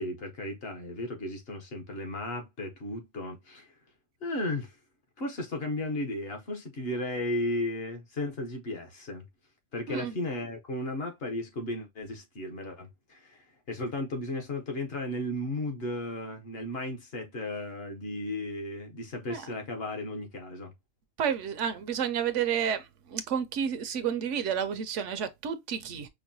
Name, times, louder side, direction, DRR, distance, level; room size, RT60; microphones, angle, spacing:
voice 1, 0.0-3.7 4.2-4.8 5.2-9.2 9.7-20.7, left 1 dB, 55° left, 1.0 m, -35 dB
voice 2, 21.2-26.1, right 8 dB, 70° right, 0.9 m, -30 dB
5.2 x 2.1 x 2.6 m
omnidirectional pair, 1.4 m